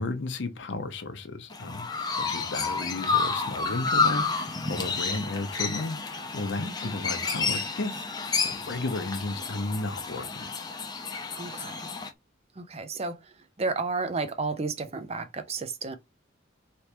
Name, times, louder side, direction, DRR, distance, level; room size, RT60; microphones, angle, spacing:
voice 1, 0.0-6.0 6.3-8.1 8.4-10.5, left 2 dB, 65° left, 0.7 m, -33 dB
Chirp tweet, 1.5-12.1, left 4 dB, 20° left, 0.6 m, -30 dB
voice 2, 6.6-6.9 11.4-11.9 12.6-16.0, right 3 dB, 30° right, 0.5 m, -32 dB
3.4 x 3.0 x 3.0 m
head